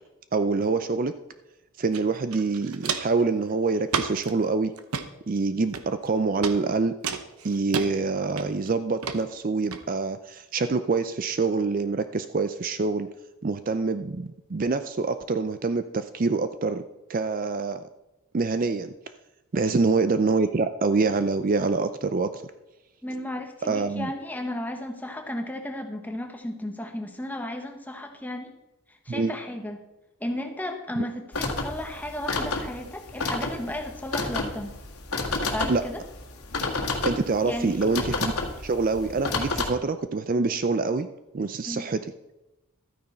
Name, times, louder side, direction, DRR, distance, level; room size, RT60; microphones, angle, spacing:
voice 1, 0.3-1.1 1.8-4.7 5.3-6.9 7.4-13.1 13.4-16.8 17.1-17.8 18.3-18.9 19.5-22.4 23.6-24.1 29.1-29.3 35.7-35.8 37.0-38.3 38.6-41.1 41.3-42.0, right 4 dB, 40° right, 11 dB, 0.4 m, -25 dB
Walk footsteps, 1.9-2.0 2.3-3.2 3.9-4.3 4.8-5.1 5.7-6.1 6.4-6.6 7.0-7.9 8.4-8.7 9.0-9.2 9.7-9.8, right 6 dB, 85° right, 0.9 m, -30 dB
voice 2, 23.0-28.5 28.9-29.8 30.2-34.7 35.5-36.0 37.4-37.8 41.7-41.9, left 1 dB, 10° left, 4 dB, 1.1 m, -34 dB
sound 1, 31.3-39.7, left 3 dB, 80° left, 1.7 m, -30 dB
13.0 x 9.3 x 4.3 m, 0.98 s
head